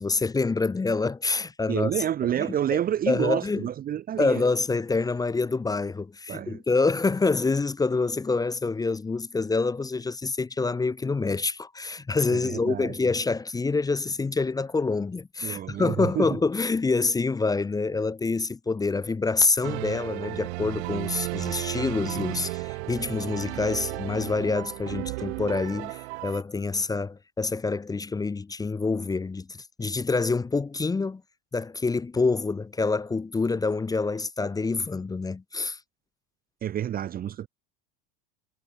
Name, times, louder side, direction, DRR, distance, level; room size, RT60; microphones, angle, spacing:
voice 1, 0.0-1.9 2.4-2.5 2.7-2.8 3.1-3.7 4.2-31.2 31.5-35.8, left 3 dB, 10° left, 0.8 m, -26 dB
voice 2, 1.7-4.4 6.3-6.6 12.3-12.9 15.4-16.3 36.6-37.5, right 10 dB, 25° right, 0.7 m, -29 dB
sound 1, 19.6-26.4, right 24 dB, 75° right, 1.9 m, -34 dB
supercardioid pair, 130°, 33 cm